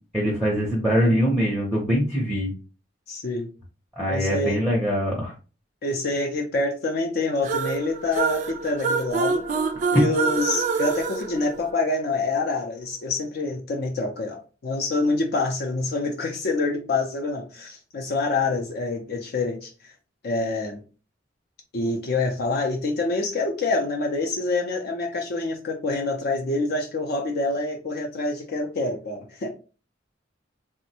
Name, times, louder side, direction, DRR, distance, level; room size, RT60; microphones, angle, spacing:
voice 1, 0.1-2.6 4.0-5.3, equal, ahead, -4 dB, 0.6 m, -23 dB
voice 2, 3.1-3.5 4.1-4.6 5.8-9.5 9.9-19.7 20.2-20.8 21.7-29.5, left 3 dB, 55° left, 2 dB, 0.4 m, -26 dB
sound 1, 7.4-12.2, right 5 dB, 40° right, 0.3 m, -26 dB
3.3 x 2.1 x 2.7 m, 0.35 s
head